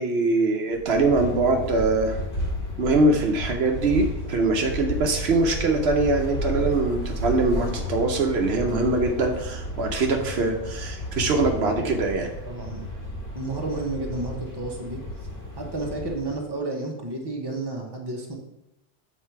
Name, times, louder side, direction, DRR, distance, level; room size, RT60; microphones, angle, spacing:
voice 1, 0.0-2.2 2.8-12.3, right 3 dB, 75° right, 3 dB, 1.0 m, -23 dB
sound 1, 0.7-16.5, equal, 65° left, 2.4 m, -32 dB
voice 2, 12.4-12.9 13.3-15.0 15.6-18.3, right 2 dB, 25° right, 0 dB, 1.0 m, -31 dB
7.5 x 3.9 x 4.6 m, 0.89 s
omnidirectional pair, 1.1 m